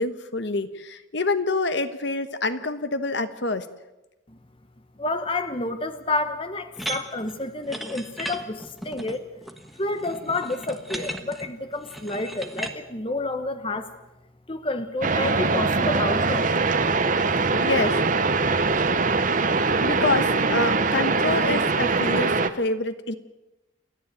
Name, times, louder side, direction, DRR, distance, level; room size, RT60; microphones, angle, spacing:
voice 1, 0.0-3.7 17.6-18.3 19.8-23.2, left 2 dB, 60° left, 11 dB, 1.2 m, -27 dB
voice 2, 5.0-9.3 9.8-13.9 14.5-16.5, left 2 dB, 25° left, 9 dB, 1.1 m, -29 dB
sound 1, 6.8-12.8, right 1 dB, ahead, 1.3 m, -36 dB
sound 2, 15.0-22.5, right 3 dB, 40° right, 1.0 m, -22 dB
29.0 x 10.5 x 9.2 m, 1.0 s
head